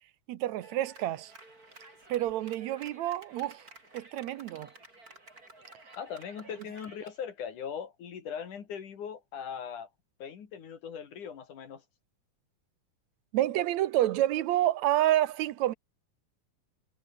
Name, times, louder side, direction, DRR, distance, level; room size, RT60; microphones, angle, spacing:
voice 1, 0.3-1.3 2.1-3.6 3.9-4.7 13.3-15.7, right 13 dB, 75° right, 2.0 m, -28 dB
Clapping, 0.6-7.2, right 2 dB, 25° right, 6.2 m, -53 dB
voice 2, 6.0-9.9 10.2-11.8, left 7 dB, 85° left, 4.3 m, -40 dB
omnidirectional pair, 3.4 m